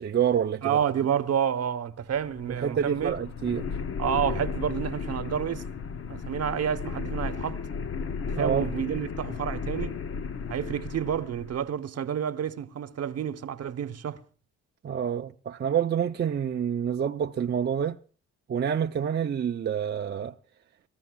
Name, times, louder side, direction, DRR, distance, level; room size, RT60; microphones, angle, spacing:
voice 1, 0.0-0.8 2.5-3.7 8.3-8.7 14.8-18.0 18.5-20.3, right 8 dB, 35° right, 0.5 m, -27 dB
voice 2, 0.6-3.2 4.0-5.6 6.1-7.6 8.3-10.0 10.5-14.2, right 8 dB, 55° right, 0.9 m, -29 dB
sound 1, 2.0-11.6, left 5 dB, 45° left, 0.8 m, -34 dB
25.0 x 13.5 x 2.3 m
cardioid pair, 90°, 30 cm